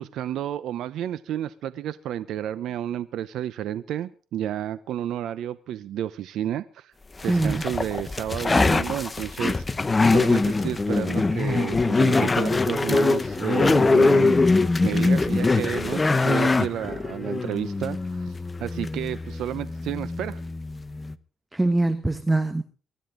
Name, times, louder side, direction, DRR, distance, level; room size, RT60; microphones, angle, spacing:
voice 1, 0.0-6.9 7.2-9.7 10.1-14.4 14.8-20.4, right 11 dB, 80° right, 0.7 m, -31 dB
sound 1, 7.2-21.1, left 3 dB, 25° left, 0.9 m, -23 dB
voice 2, 7.3-7.6 21.5-22.6, right 2 dB, 10° right, 1.2 m, -23 dB
24.0 x 12.0 x 3.8 m
cardioid pair, 90°, 0 cm